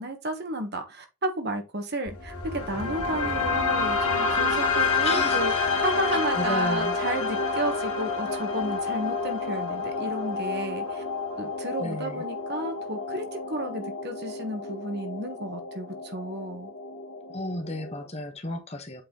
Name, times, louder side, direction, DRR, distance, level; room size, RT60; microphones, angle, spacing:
voice 1, 0.0-5.5 5.8-11.0 11.4-16.7, right 1 dB, 50° right, 1.4 m, -32 dB
sound 1, 2.1-18.1, left 4 dB, 90° left, 2.0 m, -29 dB
voice 2, 5.0-5.4 6.1-6.9 11.8-12.2 17.3-19.0, left 1 dB, 30° left, 1.1 m, -33 dB
7.7 x 4.3 x 3.8 m
head